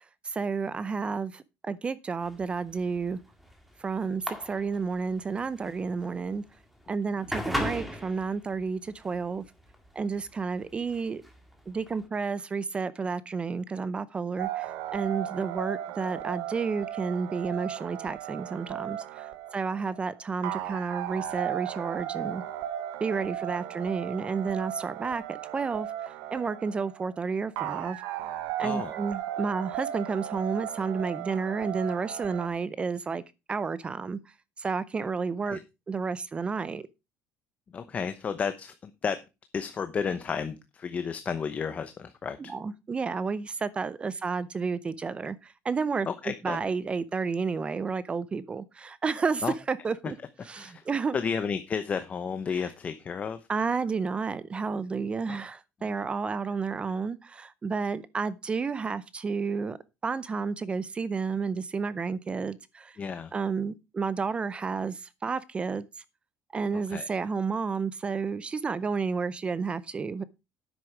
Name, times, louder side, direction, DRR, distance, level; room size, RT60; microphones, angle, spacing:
voice 1, 0.2-3.2 3.8-6.4 6.9-9.4 9.9-11.2 11.7-22.4 23.0-28.0 28.6-33.2 33.5-34.2 34.6-35.6 35.9-36.9 42.5-46.1 46.4-50.2 50.5-51.1 53.5-59.8 60.0-63.0 63.3-65.9 66.5-70.2, right 5 dB, 20° right, 0.6 m, -31 dB
sound 1, 2.2-12.1, equal, ahead, 1.9 m, -38 dB
sound 2, 14.4-32.5, right 12 dB, 85° right, 1.1 m, -36 dB
voice 2, 28.6-28.9 35.4-35.6 37.7-39.2 39.5-42.4 46.1-46.6 49.4-49.5 50.0-50.1 50.5-50.9 51.1-53.5 55.3-55.4 63.0-63.3 66.7-67.1, left 6 dB, 30° left, 0.8 m, -32 dB
9.9 x 7.7 x 5.0 m
cardioid pair, 145°, 5 cm